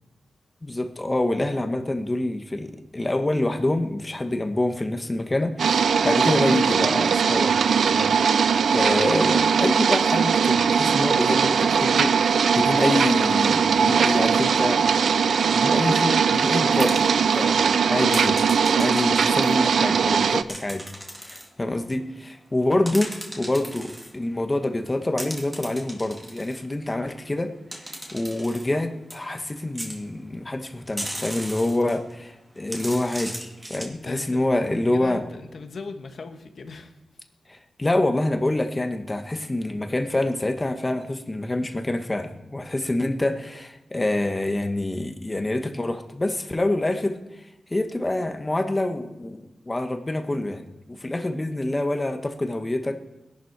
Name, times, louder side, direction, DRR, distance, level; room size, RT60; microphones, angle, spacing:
voice 1, 0.6-7.5 7.9-8.4 8.7-14.9 15.5-18.4 18.7-20.9 21.2-27.5 28.1-35.3 37.5-47.2 47.7-52.9, left 1 dB, 20° left, 1.4 m, -26 dB
sound 1, 5.6-20.4, right 6 dB, 75° right, 0.5 m, -20 dB
sound 2, 16.7-17.4 18.1-19.6 20.5-21.5 22.6-24.1 25.2-26.6 27.7-28.7 29.1-29.2 29.6-30.0 30.9-32.1 32.6-33.9, equal, 10° right, 2.1 m, -37 dB
voice 2, 33.9-34.5 34.9-36.9, left 4 dB, 60° left, 1.5 m, -39 dB
20.5 x 11.5 x 4.8 m
wide cardioid pair, 110°, 0 cm